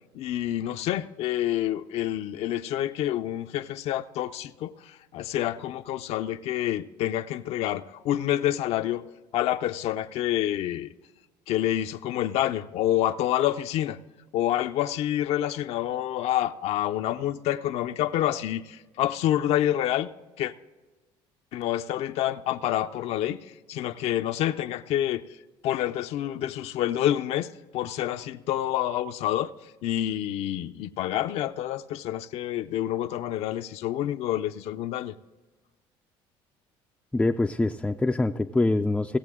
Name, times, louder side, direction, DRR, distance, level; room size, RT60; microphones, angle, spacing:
voice 1, 0.1-9.1 9.3-10.9 11.5-14.0 14.3-20.1 20.4-20.5 21.5-23.4 23.7-25.2 25.6-29.5 29.8-35.2, left 12 dB, 65° left, 0.5 m, -28 dB
voice 2, 37.1-39.2, left 2 dB, 10° left, 0.3 m, -24 dB
17.5 x 7.5 x 3.6 m
cardioid pair, 105°, 11 cm